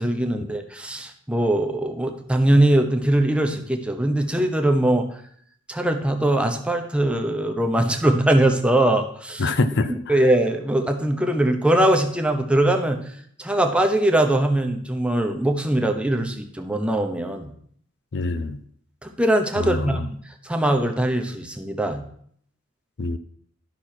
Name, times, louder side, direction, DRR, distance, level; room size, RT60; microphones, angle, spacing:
voice 1, 0.0-5.1 5.7-9.6 9.9-13.0 13.4-17.5 19.0-20.0 20.4-22.0, right 1 dB, 5° right, 0.8 m, -21 dB
voice 2, 9.4-10.1 18.1-18.6 19.6-20.1 23.0-23.2, left 2 dB, 60° left, 0.5 m, -25 dB
12.0 x 6.1 x 4.4 m
head